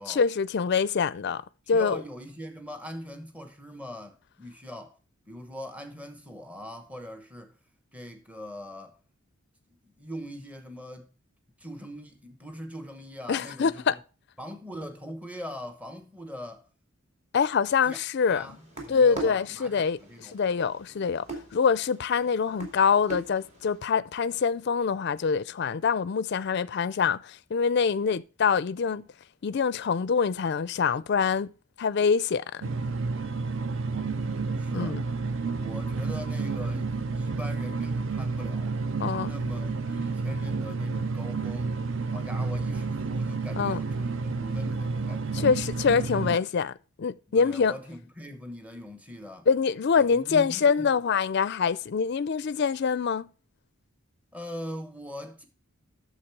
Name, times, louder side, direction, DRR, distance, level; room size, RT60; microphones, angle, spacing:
voice 1, 0.1-1.4 1.7-2.0 13.3-14.0 17.3-18.4 18.9-20.0 20.3-21.3 21.5-29.1 29.4-31.5 31.8-32.7 34.7-35.0 39.0-39.3 43.6-43.8 45.3-46.7 47.0-47.7 49.5-53.3, left 6 dB, 50° left, 0.4 m, -25 dB
voice 2, 1.7-5.0 5.3-7.5 7.9-9.0 9.8-11.1 11.6-14.0 14.4-16.7 17.8-18.0 18.3-20.3 33.8-35.0 35.6-38.8 39.2-41.8 42.1-45.5 46.1-46.4 47.3-49.5 49.9-50.9 54.3-55.5, equal, 5° right, 1.0 m, -41 dB
sound 1, 18.2-23.8, right 3 dB, 30° right, 2.5 m, -43 dB
sound 2, 32.6-46.4, right 4 dB, 60° right, 0.6 m, -30 dB
8.9 x 6.8 x 4.6 m
head